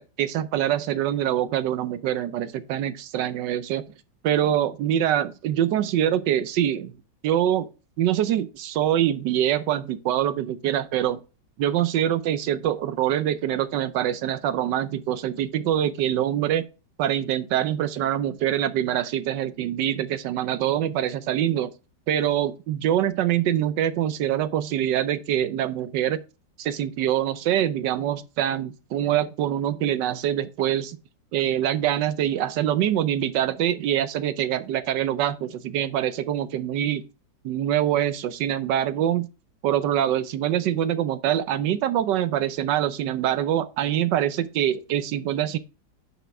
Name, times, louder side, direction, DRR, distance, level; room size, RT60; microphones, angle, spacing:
voice 1, 0.0-3.8 4.2-6.9 7.2-7.7 8.0-11.2 11.6-16.7 17.0-21.7 22.1-26.2 26.6-31.0 31.3-37.0 37.4-39.3 39.6-45.6, right 11 dB, 75° right, 1.2 m, -24 dB
9.1 x 6.0 x 3.4 m
omnidirectional pair, 2.0 m